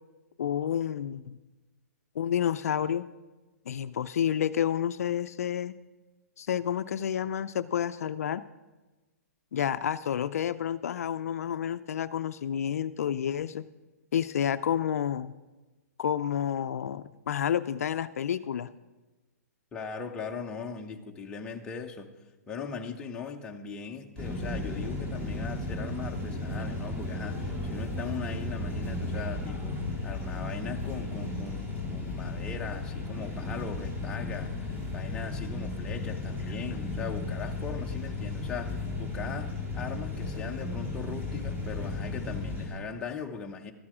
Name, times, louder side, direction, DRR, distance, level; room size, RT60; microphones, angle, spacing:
voice 1, 0.4-1.4 2.2-3.0 3.7-5.7 6.4-8.4 9.5-13.6 14.1-15.3 16.0-18.7, left 9 dB, 65° left, 13 dB, 0.4 m, -30 dB
voice 2, 19.7-22.1 22.5-29.8 30.0-43.7, left 5 dB, 10° left, 2 dB, 0.6 m, -39 dB
sound 1, 24.2-42.7, left 2 dB, 20° right, 2.3 m, -34 dB
13.0 x 8.6 x 4.9 m, 1.2 s
hypercardioid pair, 160°, 9 cm